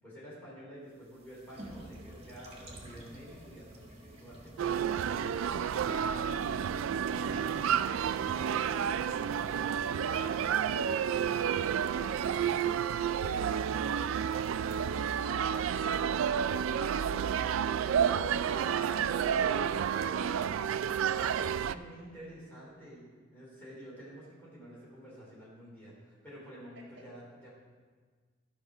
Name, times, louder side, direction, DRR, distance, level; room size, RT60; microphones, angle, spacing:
voice 1, 0.0-5.1 7.1-7.8 20.9-23.0 23.3-27.5, equal, 10° left, -7 dB, 3.2 m, -50 dB
sound 1, 0.9-15.2, right 1 dB, 30° right, 1.4 m, -52 dB
sound 2, 4.6-21.7, right 8 dB, 75° right, 0.3 m, -30 dB
voice 2, 5.9-6.9 26.7-26.8, right 1 dB, 55° right, 0 dB, 1.4 m, -54 dB
13.0 x 5.9 x 5.0 m, 1.5 s
head